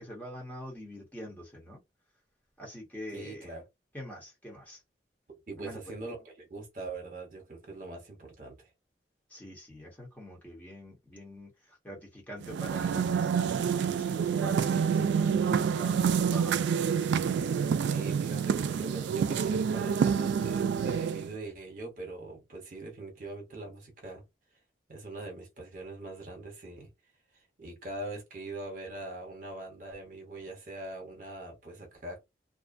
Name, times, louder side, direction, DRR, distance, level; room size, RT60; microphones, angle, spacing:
voice 1, 0.0-1.8 2.6-3.5 3.9-4.8 5.6-5.8 9.3-16.9, equal, 10° left, 0.9 m, -45 dB
voice 2, 3.1-3.7 5.5-8.7 17.5-24.2 24.9-26.9 27.6-32.2, right 2 dB, 50° right, 1.0 m, -42 dB
sound 1, 12.4-21.3, right 7 dB, 85° right, 0.3 m, -28 dB
2.5 x 2.2 x 2.5 m
head